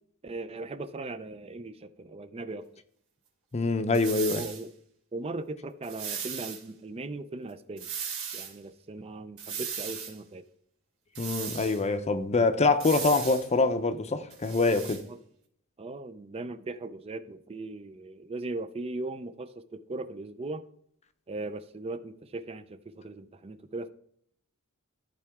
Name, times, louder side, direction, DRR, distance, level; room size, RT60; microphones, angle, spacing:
voice 1, 0.2-2.7 4.3-4.7 5.1-7.9 8.3-10.4 15.8-20.6 21.3-23.9, right 2 dB, 25° right, 0.4 m, -38 dB
voice 2, 3.5-4.5 11.2-15.0, left 3 dB, 30° left, 0.6 m, -25 dB
sound 1, 3.9-4.6 5.8-6.6 7.8-8.5 9.4-10.1 11.1-11.8 12.8-13.5 14.3-15.0, right 7 dB, 70° right, 2.9 m, -37 dB
14.0 x 4.7 x 3.5 m
head